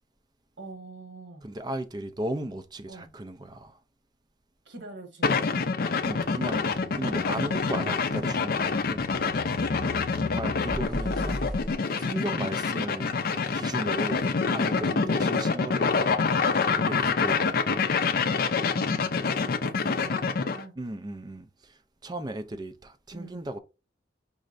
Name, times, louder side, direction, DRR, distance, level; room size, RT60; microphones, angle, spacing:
voice 1, 0.6-1.4 2.9-3.1 4.6-5.7 7.5-7.7 9.7-10.1 14.9-15.3 18.7-20.7 23.1-23.4, right 3 dB, 70° right, 1.3 m, -44 dB
voice 2, 1.4-3.8 6.0-6.6 6.9-9.0 10.2-11.4 12.0-13.2 13.5-14.9 15.2-16.2 16.4-17.8 20.8-23.6, right 1 dB, 20° right, 0.4 m, -36 dB
sound 1, 5.2-20.6, left 4 dB, 50° left, 0.4 m, -26 dB
sound 2, 6.0-11.7, left 1 dB, ahead, 1.5 m, -39 dB
4.9 x 3.2 x 2.5 m
head